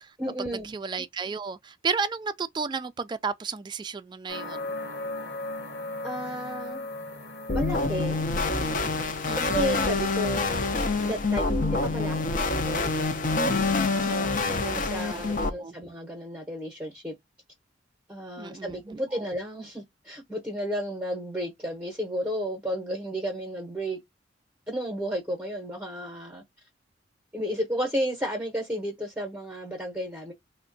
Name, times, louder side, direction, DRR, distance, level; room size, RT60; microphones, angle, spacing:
voice 1, 0.2-0.7 6.0-6.9 7.5-8.2 9.3-10.5 11.0-12.9 13.9-14.4 14.6-17.1 18.1-24.0 24.7-26.4 27.3-30.3, equal, 10° right, 0.8 m, -32 dB
voice 2, 0.7-4.7 9.3-9.6 14.0-14.8 15.1-15.8 18.4-19.2, right 5 dB, 25° right, 0.3 m, -33 dB
sound 1, 4.3-8.6, left 2 dB, 60° left, 1.2 m, -37 dB
sound 2, 7.5-15.5, left 3 dB, 45° left, 0.6 m, -26 dB
3.3 x 2.1 x 3.8 m
head